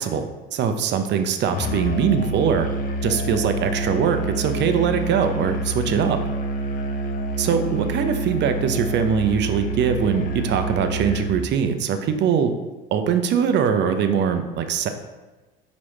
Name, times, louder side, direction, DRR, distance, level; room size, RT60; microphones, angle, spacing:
voice 1, 0.0-2.7 3.0-6.2 7.4-12.5 12.9-14.9, right 7 dB, 35° right, 8 dB, 0.5 m, -22 dB
Musical instrument, 1.5-11.5, right 2 dB, 30° left, 0.5 m, -27 dB
4.6 x 3.0 x 3.0 m, 1.2 s
hypercardioid pair, 70°, 30 cm